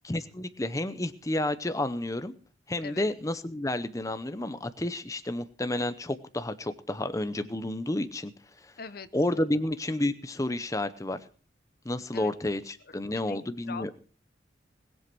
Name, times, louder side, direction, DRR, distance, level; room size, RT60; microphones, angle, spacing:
voice 1, 0.0-2.3 2.7-8.3 8.6-8.7 9.1-11.2 11.8-13.9, left 1 dB, 20° left, 11 dB, 0.8 m, -30 dB
voice 2, 8.8-9.5 12.1-12.3 12.8-13.9, left 5 dB, 55° left, 14 dB, 0.9 m, -43 dB
20.5 x 8.0 x 6.1 m, 0.41 s
head